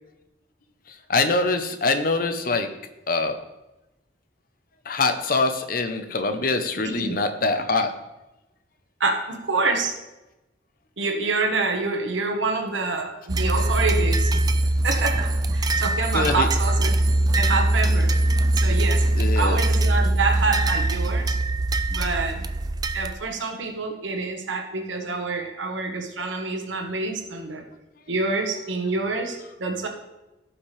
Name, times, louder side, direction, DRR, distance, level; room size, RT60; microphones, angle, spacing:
voice 1, 0.9-2.7 3.1-3.4 4.8-7.9 16.1-16.5 19.2-19.6, left 3 dB, 50° left, 7 dB, 0.8 m, -24 dB
voice 2, 6.8-7.2 9.0-9.9 11.0-14.3 14.8-16.9 17.4-18.1 18.6-19.0 19.3-21.3 21.9-22.5 22.9-27.6 28.1-29.9, right 3 dB, 80° right, 3 dB, 1.3 m, -27 dB
sound 1, 13.3-23.1, right 1 dB, 20° right, 0.3 m, -22 dB
16.5 x 5.8 x 3.3 m, 0.99 s
head